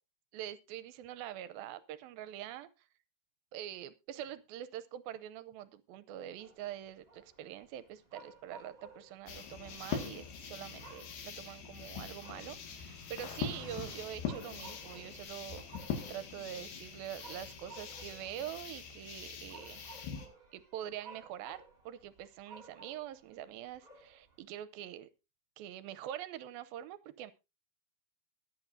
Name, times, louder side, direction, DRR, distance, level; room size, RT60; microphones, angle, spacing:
voice 1, 0.3-2.7 3.5-20.1 20.5-25.1 25.6-27.3, right 11 dB, 80° right, 14 dB, 2.4 m, -45 dB
sound 1, 6.4-24.5, right 2 dB, 15° right, 2.6 m, -57 dB
Motorcycle, 7.7-16.7 17.5-18.0, left 3 dB, 25° left, 6.9 m, -58 dB
sound 2, 9.3-20.3, left 7 dB, 80° left, 4.1 m, -43 dB
22.0 x 8.6 x 2.7 m, 0.26 s
omnidirectional pair, 4.5 m